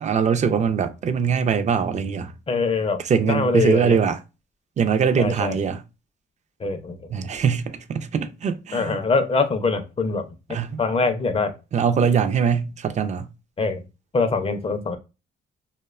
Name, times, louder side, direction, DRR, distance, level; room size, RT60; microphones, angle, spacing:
voice 1, 0.0-2.3 3.0-4.2 4.8-5.8 7.1-9.0 10.5-10.8 11.7-13.3, right 6 dB, 35° right, 0.4 m, -22 dB
voice 2, 2.5-4.0 5.2-5.6 6.6-7.0 8.7-11.6 13.6-13.8 14.1-15.0, left 4 dB, 30° left, 0.4 m, -24 dB
2.6 x 2.1 x 2.3 m
cardioid pair, 90°, 20 cm